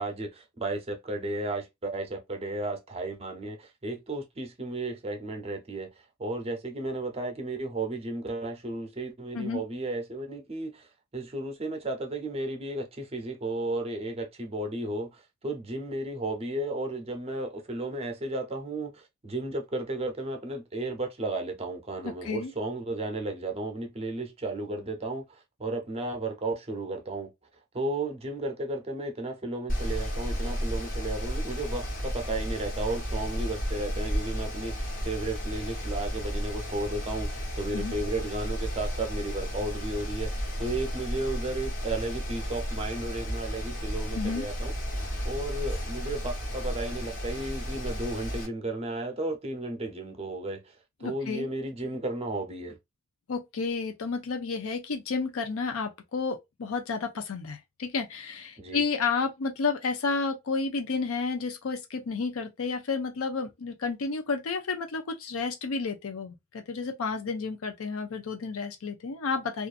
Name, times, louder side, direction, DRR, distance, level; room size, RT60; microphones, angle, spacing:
voice 1, 0.0-5.9 6.2-27.3 27.7-44.7 45.2-52.8 58.6-58.8, right 2 dB, 30° right, 0.7 m, -34 dB
voice 2, 22.0-22.5 37.7-38.0 44.1-44.5 51.0-51.5 53.3-69.7, left 4 dB, 85° left, 0.5 m, -31 dB
Mechanical fan, 29.7-48.5, equal, 40° left, 1.0 m, -33 dB
2.5 x 2.4 x 2.4 m
head